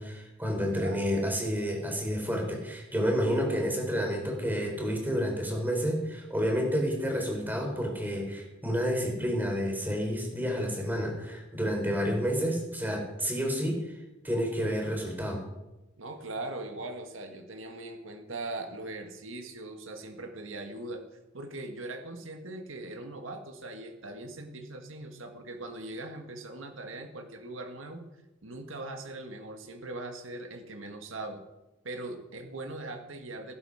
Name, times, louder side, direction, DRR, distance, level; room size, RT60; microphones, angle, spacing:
voice 1, 0.0-13.8 14.2-15.4, equal, 10° right, 1 dB, 4.0 m, -30 dB
voice 2, 16.0-21.0 21.3-28.0 28.4-31.4 31.8-33.5, right 2 dB, 80° right, 5 dB, 1.8 m, -40 dB
16.5 x 12.0 x 5.0 m, 1.0 s
head